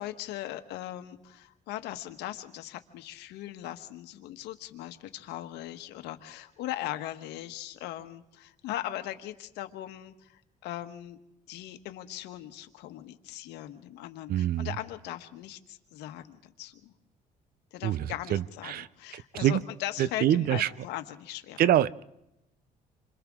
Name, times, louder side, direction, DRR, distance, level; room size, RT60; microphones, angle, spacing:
voice 1, 0.0-11.2 11.5-16.9 17.7-21.6, left 13 dB, 90° left, 9 dB, 1.3 m, -39 dB
voice 2, 14.3-14.8 17.8-19.6 20.0-20.7 21.6-22.0, right 11 dB, 60° right, 19 dB, 0.6 m, -26 dB
28.5 x 25.5 x 3.7 m, 0.87 s
cardioid pair, 110°, 17 cm